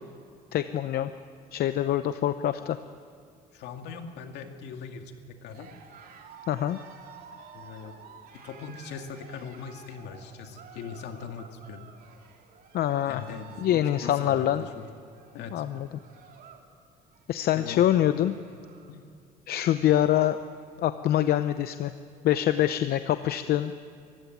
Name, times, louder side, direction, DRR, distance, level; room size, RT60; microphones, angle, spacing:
voice 1, 0.5-1.1 1.5-2.8 6.5-6.8 12.7-13.2 13.6-14.6 15.5-15.9 17.3-18.3 19.5-20.4 20.8-21.9 22.2-23.7, left 12 dB, 65° left, 10 dB, 0.8 m, -25 dB
voice 2, 3.5-5.1 5.4-5.7 7.5-7.9 8.4-11.8 13.1-14.9 15.3-15.6 17.5-17.8 18.9-19.0, left 6 dB, 80° left, 5 dB, 2.4 m, -40 dB
Cheering, 5.4-16.7 17.0-17.4 17.8-17.9 18.1-18.9, right 6 dB, 60° right, 3.3 m, -51 dB
24.5 x 15.5 x 9.4 m, 2.4 s
cardioid pair, 110°, 17 cm